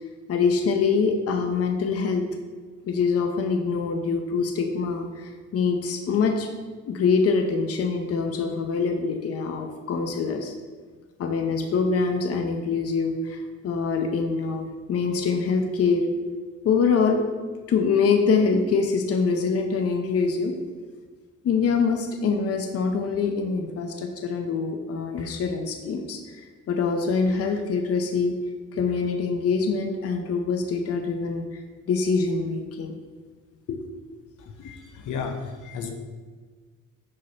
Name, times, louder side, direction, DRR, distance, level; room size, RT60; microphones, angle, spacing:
voice 1, 0.3-2.3 2.9-6.5 6.9-10.5 11.2-16.1 16.6-17.3 17.7-20.6 21.4-28.4 28.7-33.0 33.7-33.8, left 5 dB, 50° left, 5 dB, 0.7 m, -24 dB
voice 2, 34.6-35.9, left 5 dB, 80° left, 4 dB, 0.9 m, -33 dB
6.4 x 5.6 x 2.9 m, 1.5 s
cardioid pair, 90°, 30 cm